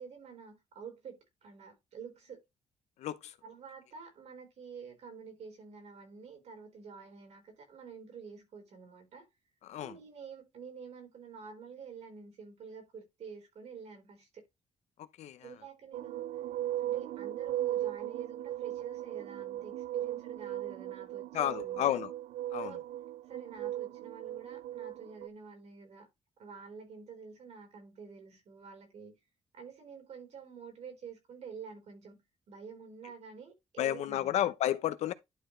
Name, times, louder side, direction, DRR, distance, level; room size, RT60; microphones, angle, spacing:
voice 1, 0.0-2.4 3.4-9.3 9.8-14.4 15.4-16.3 16.8-22.0 22.6-22.8 23.3-26.1 26.4-29.1 29.5-32.2 32.5-34.5, right 6 dB, 75° right, 4.1 m, -48 dB
voice 2, 3.0-3.3 9.6-10.0 15.2-15.5 21.3-22.1 22.5-22.8 33.8-35.1, left 12 dB, 90° left, 0.7 m, -32 dB
sound 1, 15.9-25.3, right 13 dB, 90° right, 0.4 m, -37 dB
11.5 x 4.4 x 3.2 m
cardioid pair, 90°, 11 cm